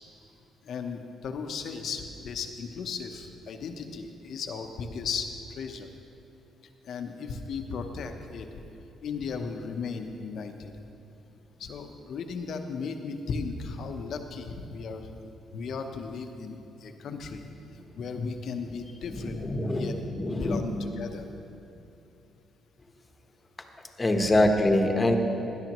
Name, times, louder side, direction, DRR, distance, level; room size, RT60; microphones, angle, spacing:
voice 1, 0.6-5.9 6.8-8.6 9.0-10.7 11.6-15.1 15.5-17.5 18.0-19.9 20.3-21.3 24.2-24.5, left 5 dB, 65° left, 6 dB, 0.9 m, -36 dB
voice 2, 19.2-20.6 24.0-25.2, left 1 dB, 20° left, 4 dB, 1.1 m, -24 dB
16.5 x 11.5 x 3.1 m, 2.9 s
cardioid pair, 90°, 0 cm